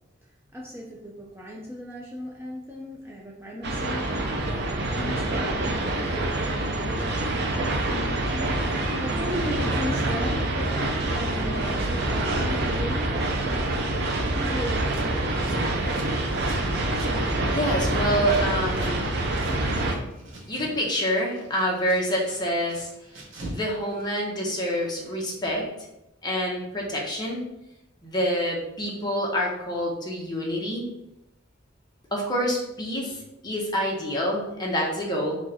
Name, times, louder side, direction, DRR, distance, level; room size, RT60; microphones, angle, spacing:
voice 1, 0.2-4.2 4.8-13.3 14.3-15.5, equal, 15° right, -3 dB, 0.6 m, -37 dB
sound 1, 3.6-19.9, right 2 dB, 60° right, 0.6 m, -26 dB
Scissors, 14.8-18.9 19.2-20.8 21.1-23.7 23.9-24.8, right 1 dB, 85° right, 1.2 m, -43 dB
voice 2, 17.5-19.1 20.5-22.9 23.4-25.7 26.2-27.4 28.0-30.9 32.1-35.4, equal, 20° left, -3 dB, 1.1 m, -27 dB
4.7 x 2.5 x 4.3 m, 0.86 s
head